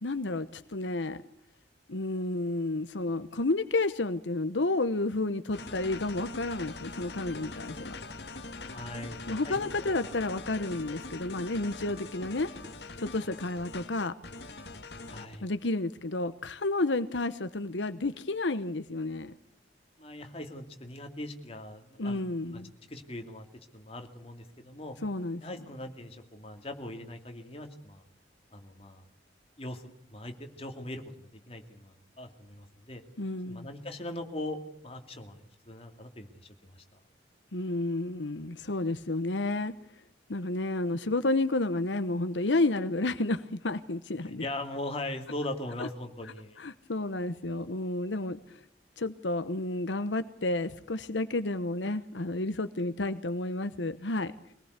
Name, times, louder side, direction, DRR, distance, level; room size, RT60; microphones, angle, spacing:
voice 1, 0.0-1.2 1.9-7.9 9.3-12.5 13.0-14.1 15.4-19.3 22.0-22.7 25.0-25.4 33.2-33.7 37.5-39.7 40.3-44.4 45.8-45.9 46.6-48.6 49.0-54.3, left 2 dB, 80° left, 11 dB, 1.1 m, -31 dB
sound 1, 5.5-15.4, left 3 dB, 65° left, 2.1 m, -43 dB
voice 2, 8.7-9.9 15.1-15.5 20.0-22.2 22.5-22.6 22.9-23.4 23.7-25.0 25.4-28.0 28.5-29.0 29.6-33.0 33.5-35.4 35.7-37.0 44.2-46.6, left 1 dB, 35° left, 4 dB, 2.7 m, -40 dB
24.5 x 19.0 x 8.2 m, 0.72 s
head